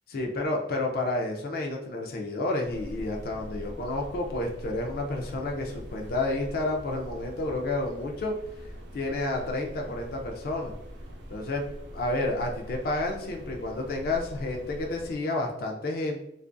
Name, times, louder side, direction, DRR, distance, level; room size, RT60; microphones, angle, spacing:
voice 1, 0.1-8.3 8.9-10.7 11.3-11.6 11.9-16.2, left 2 dB, 55° left, 1 dB, 0.4 m, -30 dB
sound 1, 2.6-15.2, equal, 85° right, 0.5 m, -43 dB
2.4 x 2.4 x 2.2 m, 0.80 s
head